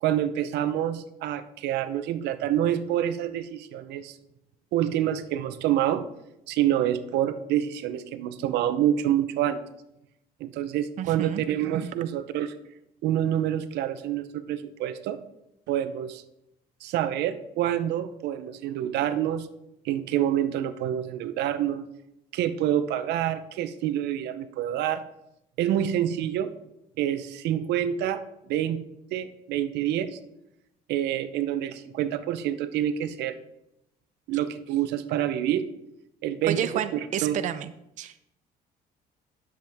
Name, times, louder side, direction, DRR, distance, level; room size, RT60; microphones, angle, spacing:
voice 1, 0.0-4.2 4.7-6.1 6.5-9.6 10.4-12.5 13.0-15.2 15.7-16.2 16.8-19.5 19.8-21.8 22.3-25.0 25.6-26.5 27.0-28.2 28.5-28.8 29.1-30.2 30.9-33.4 34.3-35.7 36.2-36.6 36.9-37.4, right 11 dB, 80° right, 12 dB, 0.7 m, -27 dB
voice 2, 11.0-11.4 36.5-37.7 38.0-38.2, right 10 dB, 45° right, 12 dB, 0.4 m, -30 dB
10.5 x 7.3 x 3.5 m, 0.87 s
cardioid pair, 110°, 17 cm